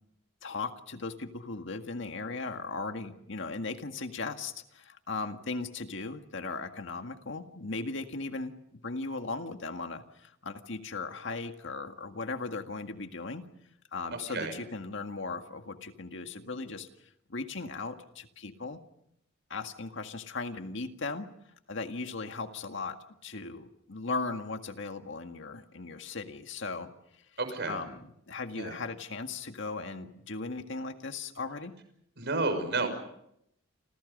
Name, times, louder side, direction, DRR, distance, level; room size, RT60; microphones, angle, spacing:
voice 1, 0.4-13.5 13.9-16.9 17.3-18.8 19.5-21.3 21.7-26.9 27.7-31.7, left 3 dB, 65° left, 6 dB, 1.9 m, -37 dB
voice 2, 14.1-14.5 27.4-27.8 28.6-28.8 32.2-32.9, right 3 dB, 60° right, 8 dB, 5.7 m, -31 dB
29.0 x 27.5 x 5.4 m, 0.76 s
head